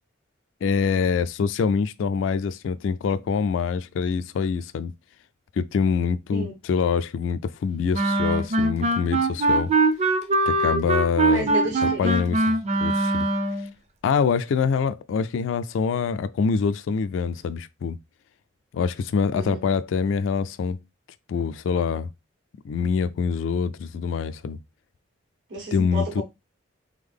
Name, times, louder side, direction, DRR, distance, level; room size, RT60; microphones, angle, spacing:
voice 1, 0.6-4.9 5.6-9.7 10.5-11.5 11.8-12.5 12.8-13.3 14.0-18.0 18.7-20.8 21.3-22.1 22.6-24.6 25.7-26.2, left 5 dB, 75° left, 0.3 m, -25 dB
Wind instrument woodwind instrument, 7.9-13.7, right 2 dB, 35° right, 0.6 m, -22 dB
voice 2, 11.3-12.1 19.3-19.6 25.5-26.2, right 2 dB, 75° right, 1.5 m, -31 dB
3.7 x 3.4 x 3.5 m
head